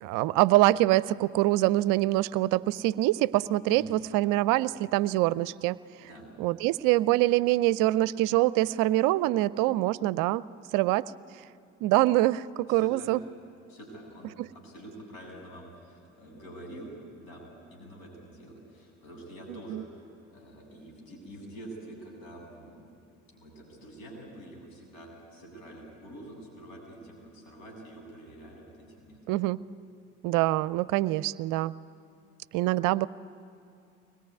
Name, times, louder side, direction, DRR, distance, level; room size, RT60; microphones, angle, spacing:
voice 1, 0.0-5.8 6.4-10.4 10.7-11.0 11.8-13.2 14.4-14.5 19.7-19.8 29.3-29.6 30.2-31.7 32.5-33.1, right 17 dB, 55° right, 19 dB, 0.6 m, -24 dB
voice 2, 3.7-4.0 6.0-6.3 12.7-13.1 13.7-16.9 17.2-17.4 17.7-22.9 23.3-29.4, right 1 dB, 65° left, 0 dB, 7.6 m, -46 dB
23.5 x 21.5 x 9.7 m, 2.5 s
figure-of-eight pair, 55°, 38 cm